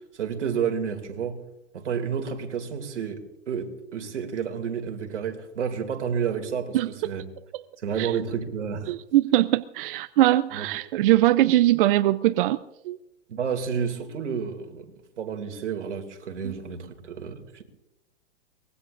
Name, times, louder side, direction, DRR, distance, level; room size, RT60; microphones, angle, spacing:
voice 1, 0.1-1.4 1.7-7.2 7.8-8.9 10.5-10.7 13.3-14.9 15.2-17.6, right 7 dB, 90° right, 2.7 m, -30 dB
voice 2, 8.9-12.6 12.8-13.0 16.4-16.5, right 15 dB, 50° right, 0.5 m, -21 dB
24.0 x 20.5 x 2.6 m
hypercardioid pair, 135°, 35 cm